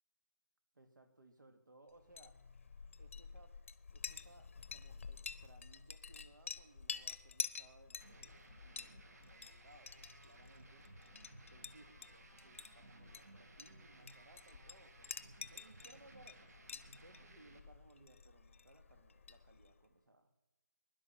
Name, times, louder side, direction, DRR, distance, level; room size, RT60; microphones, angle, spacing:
voice 1, 0.7-2.4 3.0-3.6 3.9-10.9 11.5-15.2 15.5-16.5 17.0-20.3, right 2 dB, 75° right, 7 dB, 2.4 m, -64 dB
Chink clink, 2.0-19.8, left 6 dB, 40° left, 0.8 m, -50 dB
sound 1, 8.0-17.6, right 2 dB, 55° right, 2.2 m, -60 dB
21.0 x 11.5 x 5.9 m, 0.95 s
figure-of-eight pair, 170°, 10 cm